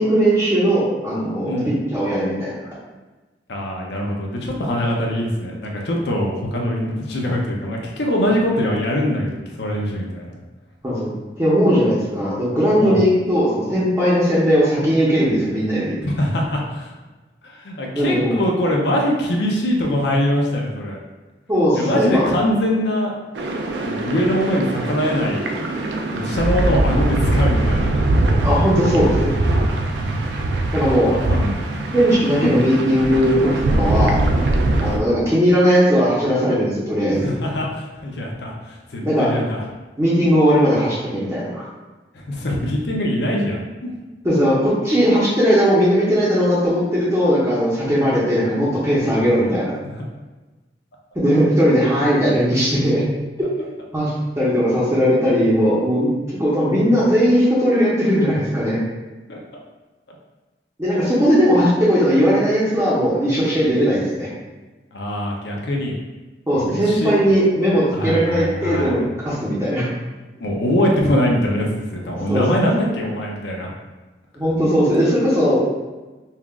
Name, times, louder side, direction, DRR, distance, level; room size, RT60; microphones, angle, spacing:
voice 1, 0.0-2.5 10.8-11.1 11.4-15.9 17.9-18.4 21.5-22.2 28.4-29.3 30.7-31.1 31.9-34.2 34.8-37.3 39.0-39.3 40.0-41.6 44.2-49.7 51.1-53.0 53.9-54.1 54.4-56.1 56.4-58.8 60.8-64.3 66.5-69.0 69.2-69.9 72.3-72.7 74.4-75.6, equal, 15° right, -11 dB, 0.8 m, -18 dB
voice 2, 3.5-10.4 12.8-13.0 16.0-16.9 17.4-21.0 21.7-23.1 23.9-25.5 26.1-28.0 31.0-31.6 32.4-32.7 37.1-39.7 42.1-43.9 49.8-50.0 59.3-59.4 64.9-65.9 66.5-67.1 67.9-69.1 70.4-73.7, equal, 70° left, -1 dB, 0.6 m, -23 dB
sound 1, 23.4-35.0, right 2 dB, 70° right, 0.4 m, -21 dB
5.5 x 2.4 x 2.4 m, 1.2 s
head